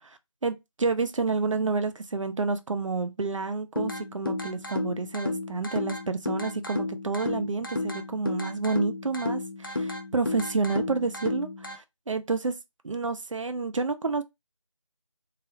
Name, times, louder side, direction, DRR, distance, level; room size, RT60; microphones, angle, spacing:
voice 1, 0.0-12.5 12.8-14.2, right 4 dB, 70° right, 0.4 m, -29 dB
sound 1, 3.8-11.8, left 2 dB, 40° left, 0.4 m, -33 dB
2.3 x 2.0 x 2.5 m
figure-of-eight pair, 165°, 17 cm